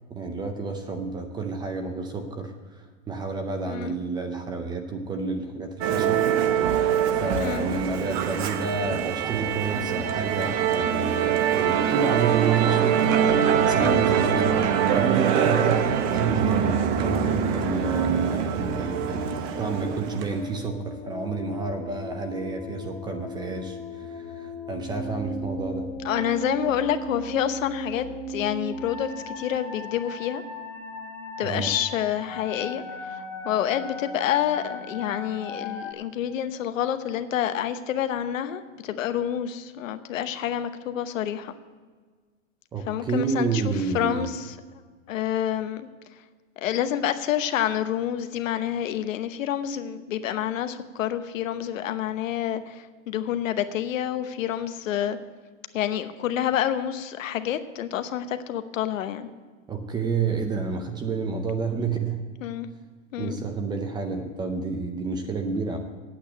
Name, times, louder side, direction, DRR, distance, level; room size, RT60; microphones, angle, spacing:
voice 1, 0.1-6.4 7.1-15.9 16.1-25.9 31.4-31.7 42.7-44.3 59.7-62.2 63.2-65.8, right 4 dB, 10° right, 5 dB, 0.5 m, -30 dB
Musical instrument, 5.8-20.5, right 8 dB, 40° right, 0.8 m, -24 dB
voice 2, 7.4-7.7 13.8-14.1 26.0-30.4 31.4-41.5 42.9-44.5 45.1-45.9 46.6-55.2 55.7-59.3 62.4-62.7 63.1-63.4, left 10 dB, 80° left, 10 dB, 1.0 m, -28 dB
sound 1, 16.7-35.9, left 1 dB, 10° left, 1.2 m, -37 dB
8.6 x 8.5 x 8.8 m, 1.5 s
supercardioid pair, 155°, 39 cm